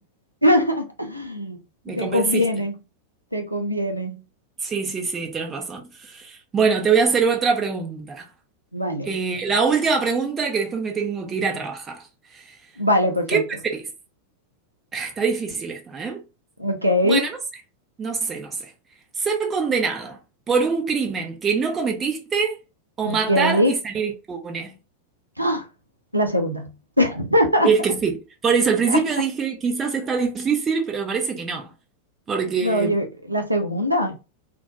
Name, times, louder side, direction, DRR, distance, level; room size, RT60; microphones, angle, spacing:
voice 1, 0.4-1.6 1.9-2.7 3.3-4.2 8.7-9.1 12.8-13.4 16.6-17.2 23.0-23.7 25.4-25.6 26.1-26.7 27.0-27.7 28.9-29.0 32.6-34.1, left 1 dB, 90° right, 0.4 m, -21 dB
voice 2, 1.9-2.5 4.6-8.2 9.1-12.0 12.3-12.6 13.3-13.4 13.7-13.8 14.9-16.2 17.0-17.4 18.0-18.6 19.2-20.2 20.5-22.6 23.0-24.7 27.6-28.2 28.4-31.7 32.3-33.0, right 5 dB, 20° right, 0.6 m, -24 dB
2.2 x 2.1 x 2.6 m
figure-of-eight pair, 90°, 0 cm